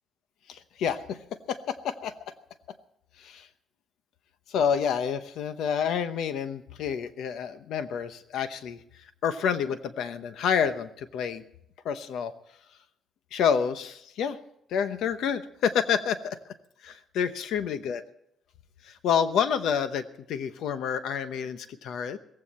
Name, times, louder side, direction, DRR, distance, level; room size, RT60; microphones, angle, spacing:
voice 1, 0.5-2.1 3.2-3.5 4.5-11.4 11.8-12.3 13.3-14.4 14.7-16.4 16.8-18.0 18.8-22.2, left 7 dB, 70° left, 11 dB, 0.9 m, -29 dB
17.5 x 15.5 x 4.3 m, 0.74 s
cardioid pair, 160°, 0 cm